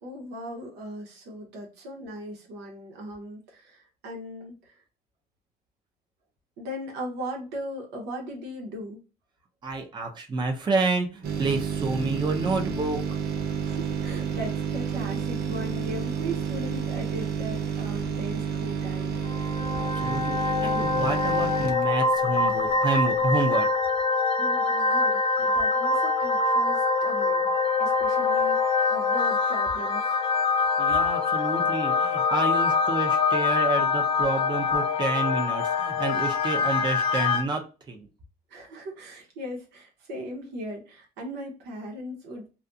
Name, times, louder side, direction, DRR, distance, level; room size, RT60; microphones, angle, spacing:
voice 1, 0.0-4.8 6.6-9.0 13.6-19.4 24.4-30.4 38.5-42.5, equal, 85° right, 1.0 m, -38 dB
voice 2, 9.6-13.1 19.6-23.7 30.8-38.1, right 3 dB, 25° right, 0.6 m, -29 dB
sound 1, 11.2-22.9 23.2-23.3, right 6 dB, 70° right, 0.6 m, -30 dB
sound 2, 19.3-37.4, left 4 dB, 35° left, 0.4 m, -24 dB
2.4 x 2.3 x 2.6 m
cardioid pair, 110°, 17 cm